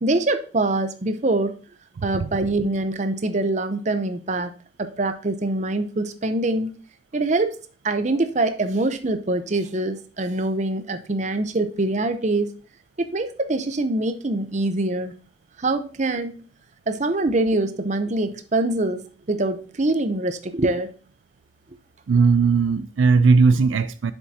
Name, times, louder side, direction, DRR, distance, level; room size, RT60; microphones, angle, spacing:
voice 1, 0.0-1.5 2.0-4.5 4.8-6.7 7.1-7.6 7.8-12.5 13.0-15.1 15.6-16.4 16.9-19.0 19.3-20.9, right 2 dB, 35° right, 0.7 m, -24 dB
voice 2, 22.1-24.1, right 4 dB, 80° right, 0.4 m, -18 dB
7.2 x 6.9 x 2.8 m
head